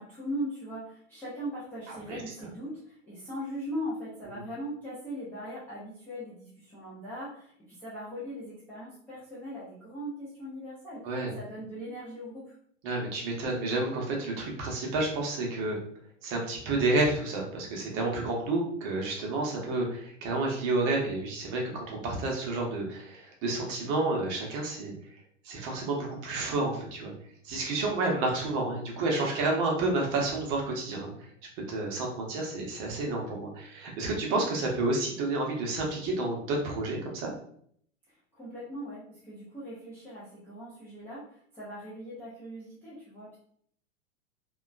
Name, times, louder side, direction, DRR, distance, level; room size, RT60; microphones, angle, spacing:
voice 1, 0.0-12.5 38.1-43.4, equal, 5° left, -11 dB, 0.4 m, -40 dB
voice 2, 1.9-2.2 11.0-11.3 12.8-15.8 16.2-24.9 25.4-27.1 27.4-31.3 31.7-37.3, right 2 dB, 35° right, 0 dB, 0.7 m, -30 dB
2.8 x 2.2 x 2.4 m, 0.64 s
figure-of-eight pair, 100°, 38 cm